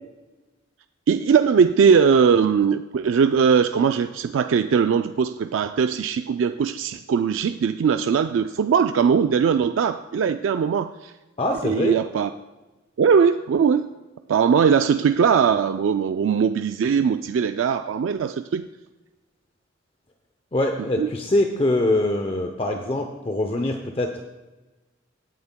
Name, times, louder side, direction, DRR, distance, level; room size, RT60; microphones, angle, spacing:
voice 1, 1.1-11.1 11.6-12.3 13.0-13.9 14.3-18.6 21.0-21.1, right 6 dB, 70° right, 9 dB, 0.3 m, -20 dB
voice 2, 11.4-12.0 20.5-24.2, left 1 dB, 30° left, 4 dB, 0.6 m, -23 dB
17.5 x 9.2 x 2.2 m, 1.2 s
head